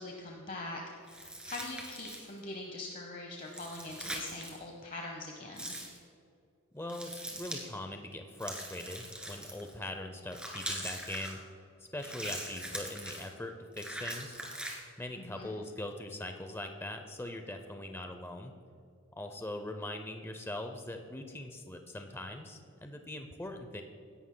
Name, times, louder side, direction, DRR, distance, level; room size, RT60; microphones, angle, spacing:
voice 1, 0.0-5.8 15.2-15.5, left 2 dB, 40° left, 1 dB, 0.9 m, -43 dB
sound 1, 1.1-2.4 3.5-4.6 5.5-6.0 6.9-7.6 8.4-9.7 10.3-11.3 12.0-13.3 13.7-14.8, right 1 dB, 5° right, 1.7 m, -41 dB
voice 2, 6.7-11.4 11.9-14.4 15.0-18.5 19.2-23.8, left 1 dB, 10° left, 5 dB, 0.5 m, -41 dB
16.5 x 11.0 x 2.2 m, 2.5 s
head